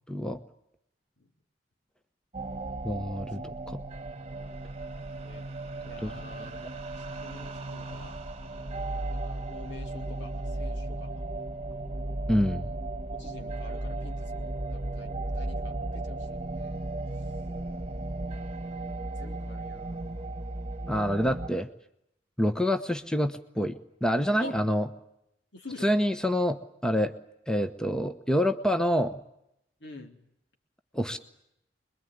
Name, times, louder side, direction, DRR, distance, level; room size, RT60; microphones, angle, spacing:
voice 1, 0.1-0.4 2.8-3.8 6.0-6.1 12.3-12.7 20.9-21.7 22.4-24.9 25.8-27.1 27.5-29.2 30.9-31.2, equal, 5° left, 8 dB, 1.0 m, -27 dB
sound 1, 2.3-21.5, right 2 dB, 35° right, 1.5 m, -35 dB
voice 2, 5.8-8.1 8.9-11.1 12.3-12.8 13.1-16.9 18.1-20.0 24.4-24.6 25.5-25.9 29.8-30.2, left 2 dB, 70° left, 3 dB, 3.8 m, -47 dB
26.0 x 22.0 x 9.6 m, 0.79 s
head